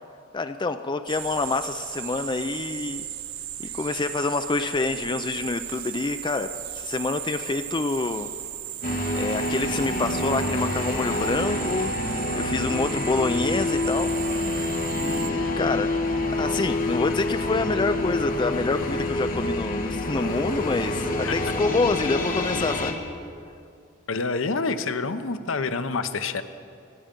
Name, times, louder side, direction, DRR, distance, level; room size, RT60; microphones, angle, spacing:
voice 1, 0.3-3.0 3.6-6.5 6.8-8.3 9.1-14.7 14.9-15.9 16.4-23.0, left 3 dB, 20° left, 9 dB, 0.4 m, -27 dB
sound 1, 1.1-15.3, right 11 dB, 75° right, 0.7 m, -36 dB
sound 2, 8.8-22.9, left 2 dB, 45° left, 1.3 m, -27 dB
voice 2, 24.1-26.4, left 4 dB, 70° left, 10 dB, 0.7 m, -27 dB
26.0 x 8.7 x 5.2 m, 2.4 s
head